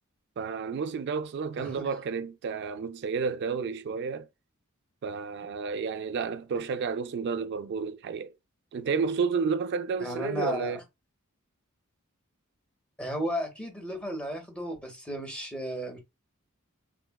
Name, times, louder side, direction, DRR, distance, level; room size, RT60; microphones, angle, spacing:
voice 1, 0.4-4.3 5.0-8.3 8.7-10.8, right 5 dB, 50° right, 0.3 m, -31 dB
voice 2, 1.6-1.9 10.0-10.8 13.0-16.0, equal, 5° left, 0.8 m, -34 dB
3.5 x 2.3 x 2.2 m
head